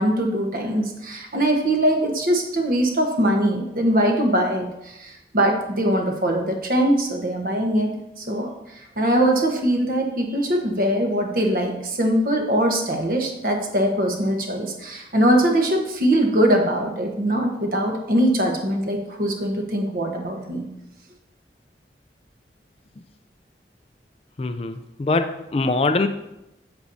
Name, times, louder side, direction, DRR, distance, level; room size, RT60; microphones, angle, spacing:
voice 1, 0.0-20.7, right 1 dB, 50° right, 2 dB, 1.1 m, -22 dB
voice 2, 24.4-26.1, left 3 dB, 35° left, 9 dB, 0.3 m, -23 dB
8.1 x 7.0 x 2.7 m, 0.88 s
head